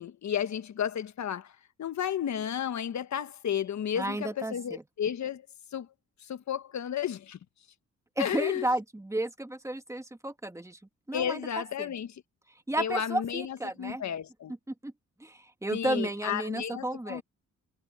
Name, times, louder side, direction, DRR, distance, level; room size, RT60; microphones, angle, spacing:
voice 1, 0.0-1.5 1.8-5.5 5.7-5.9 6.2-7.4 8.2-8.6 11.1-12.1 12.8-14.5 15.7-17.2, left 9 dB, 60° left, 1.4 m, -32 dB
voice 2, 4.0-4.8 8.2-10.8 11.1-11.4 11.8-11.9 12.7-14.0 14.7-14.9 15.2-17.2, right 1 dB, 10° right, 1.8 m, -32 dB
cardioid pair, 80°, 32 cm